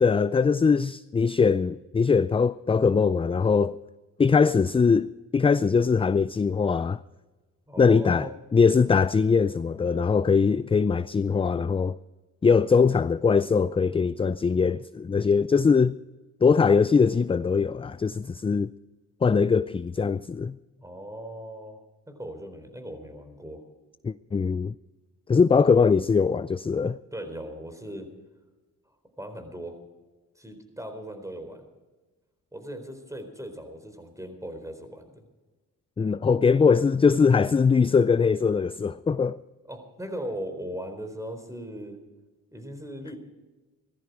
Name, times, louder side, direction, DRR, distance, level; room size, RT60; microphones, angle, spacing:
voice 1, 0.0-3.8 4.2-7.0 7.8-12.0 12.4-16.0 16.4-18.7 19.2-20.6 24.0-24.7 25.3-27.0 36.0-39.4, left 5 dB, 15° left, 0.4 m, -21 dB
voice 2, 7.7-8.3 20.8-21.8 22.1-23.6 27.1-28.1 29.2-29.8 30.4-31.6 32.5-35.2 39.7-42.0 42.5-43.2, equal, 10° right, 4.1 m, -38 dB
17.0 x 13.5 x 4.9 m
supercardioid pair, 60°, 34 cm